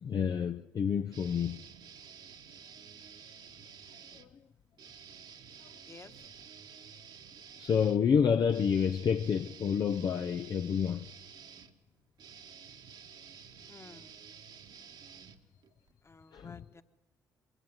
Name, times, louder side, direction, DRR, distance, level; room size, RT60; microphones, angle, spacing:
voice 1, 0.0-1.6 4.1-4.3 7.6-11.1 16.3-16.6, left 7 dB, 50° left, 0.6 m, -29 dB
sound 1, 1.1-4.3 4.8-15.9, right 7 dB, 55° right, 1.5 m, -52 dB
voice 2, 13.7-14.1 16.0-16.8, left 4 dB, 30° left, 1.4 m, -53 dB
22.5 x 16.0 x 7.3 m
hypercardioid pair, 50°, 9 cm